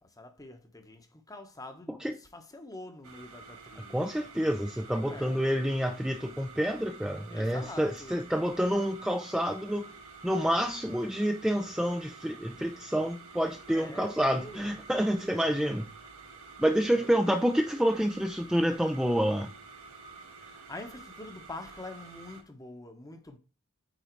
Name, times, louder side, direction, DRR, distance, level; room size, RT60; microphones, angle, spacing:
voice 1, 0.0-4.0 5.0-5.5 7.3-8.2 13.7-14.7 16.9-17.3 20.4-23.4, left 2 dB, 15° left, 1.1 m, -45 dB
sound 1, 3.0-22.4, right 4 dB, 80° right, 2.2 m, -49 dB
voice 2, 3.9-9.9 10.2-15.9 16.6-19.5, equal, 5° right, 0.6 m, -28 dB
9.0 x 3.9 x 4.6 m
head